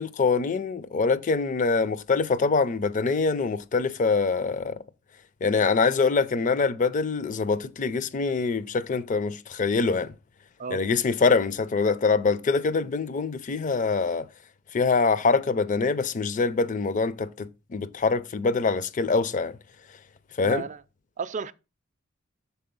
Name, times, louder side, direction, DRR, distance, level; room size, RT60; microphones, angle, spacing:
voice 1, 0.0-4.8 5.4-10.1 10.7-14.3 14.7-19.5 20.4-20.6, left 4 dB, 40° left, 0.4 m, -24 dB
voice 2, 20.4-20.8 21.2-21.5, right 5 dB, 35° right, 0.4 m, -33 dB
6.8 x 4.1 x 5.3 m
head